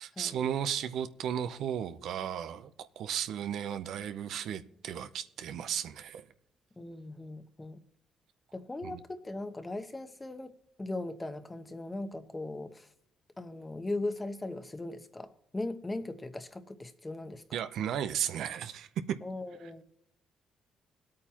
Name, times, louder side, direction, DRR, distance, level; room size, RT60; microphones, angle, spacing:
voice 1, 0.0-6.2 8.8-9.0 17.5-18.9, right 9 dB, 75° right, 11 dB, 0.7 m, -35 dB
voice 2, 6.8-7.8 8.5-10.5 10.8-12.9 13.4-17.6 19.2-19.8, left 2 dB, 20° left, 10 dB, 1.1 m, -39 dB
20.0 x 8.7 x 2.9 m, 0.77 s
cardioid pair, 90°, 0 cm